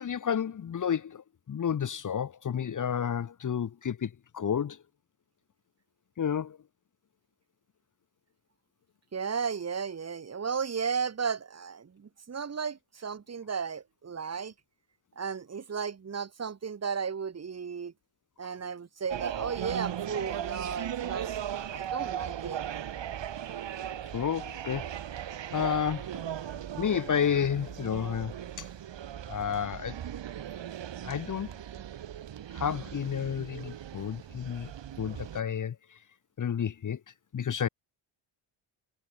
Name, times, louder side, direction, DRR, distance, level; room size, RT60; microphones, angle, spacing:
voice 1, 0.0-4.8 6.2-6.6 24.1-24.9 25.5-26.1 26.8-28.7 29.3-29.9 31.0-31.5 32.5-34.7 35.0-35.7 36.4-37.0 37.3-37.7, left 8 dB, 40° left, 1.7 m, -31 dB
voice 2, 9.1-14.5 15.2-17.9 18.4-22.6, right 6 dB, 30° right, 3.0 m, -34 dB
sound 1, 19.1-35.4, right 10 dB, 60° right, 6.7 m, -38 dB
wide cardioid pair, 165°, 48 cm